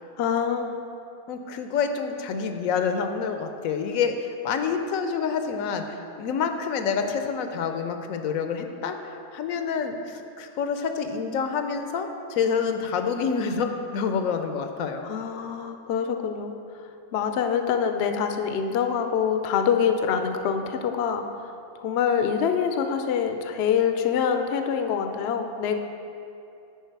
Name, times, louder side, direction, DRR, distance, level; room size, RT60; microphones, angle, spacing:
voice 1, 0.2-0.8 15.0-16.6 17.1-21.3 21.8-25.8, left 7 dB, 65° left, 7 dB, 0.7 m, -25 dB
voice 2, 1.3-5.9 6.2-15.0, left 6 dB, 80° left, 6 dB, 1.0 m, -27 dB
9.4 x 4.7 x 4.5 m, 2.6 s
omnidirectional pair, 1.4 m